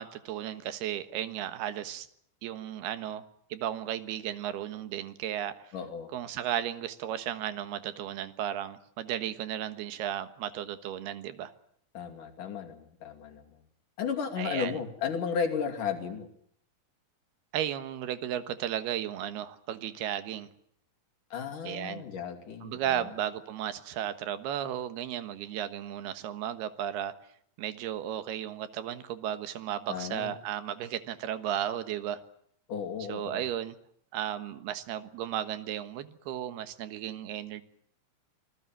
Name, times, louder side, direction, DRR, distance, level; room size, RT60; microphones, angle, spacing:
voice 1, 0.0-2.1 2.4-3.2 3.5-5.7 6.1-11.5 14.4-14.8 17.5-20.5 21.6-22.0 22.6-27.1 27.6-32.2 33.1-33.7 34.1-37.6, right 10 dB, 80° right, 11 dB, 3.4 m, -34 dB
voice 2, 5.7-6.1 11.9-13.4 14.0-16.3 21.3-22.8 29.9-30.3 32.7-33.4, left 6 dB, 55° left, 4 dB, 4.2 m, -34 dB
26.0 x 20.0 x 7.5 m, 0.67 s
omnidirectional pair, 4.5 m